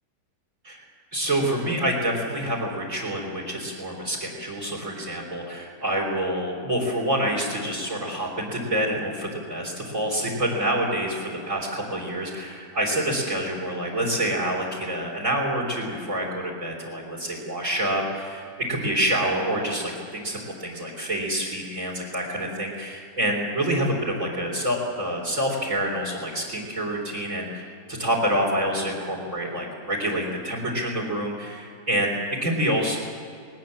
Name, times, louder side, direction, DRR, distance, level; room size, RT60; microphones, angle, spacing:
voice 1, 1.1-33.0, right 1 dB, 45° right, -2 dB, 3.9 m, -27 dB
20.0 x 19.0 x 7.5 m, 2.4 s
omnidirectional pair, 2.0 m